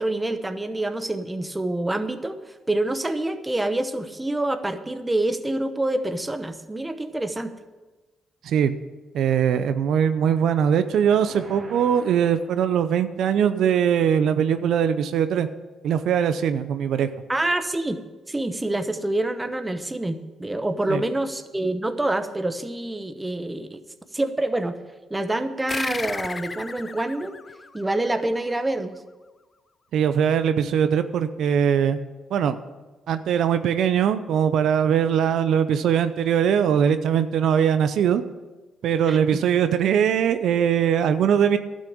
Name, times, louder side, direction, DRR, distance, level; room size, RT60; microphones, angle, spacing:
voice 1, 0.0-7.6 17.3-18.0 18.3-23.8 24.1-24.8 25.1-27.3 27.7-29.0 39.1-39.4, right 1 dB, 15° right, 8 dB, 0.9 m, -26 dB
voice 2, 8.4-8.8 9.1-15.5 15.8-17.1 20.9-21.0 29.9-32.0 32.3-32.6 33.1-38.2 38.8-41.6, right 8 dB, 75° right, 11 dB, 0.6 m, -21 dB
sound 1, 10.8-13.2, right 3 dB, 40° right, 2.2 m, -44 dB
sound 2, 25.7-28.7, left 4 dB, 30° left, 0.5 m, -34 dB
11.5 x 6.4 x 8.7 m, 1.2 s
cardioid pair, 90°, 0 cm